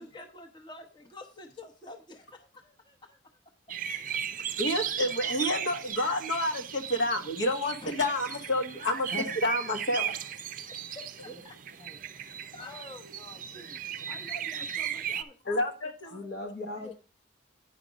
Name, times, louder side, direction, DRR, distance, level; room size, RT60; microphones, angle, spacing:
voice 1, 0.0-3.2 4.1-4.2 7.8-7.9 10.7-11.6 12.1-15.7 16.0-16.2 16.8-16.9, left 2 dB, 25° left, 4 dB, 0.9 m, -48 dB
sound 1, 3.7-15.2, right 9 dB, 45° right, 0.5 m, -36 dB
voice 2, 4.3-10.1 12.4-12.5 15.4-16.2, left 1 dB, 75° left, 5 dB, 1.4 m, -29 dB
voice 3, 16.1-16.9, left 2 dB, 55° left, 4 dB, 1.0 m, -39 dB
9.4 x 5.1 x 5.1 m, 0.35 s
head